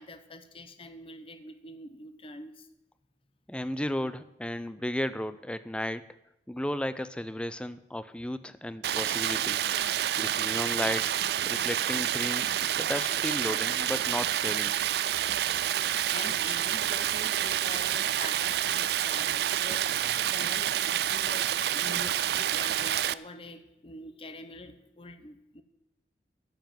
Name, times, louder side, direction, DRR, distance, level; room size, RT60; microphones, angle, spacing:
voice 1, 0.0-2.7 14.6-14.7 15.8-25.6, left 2 dB, 30° left, 9 dB, 0.9 m, -45 dB
voice 2, 3.5-6.1 6.5-9.6 10.2-11.1 11.5-14.8, left 1 dB, 5° left, 14 dB, 0.4 m, -34 dB
Stream, 8.8-23.1, right 11 dB, 60° right, 0.4 m, -28 dB
10.5 x 7.2 x 9.2 m, 0.85 s
head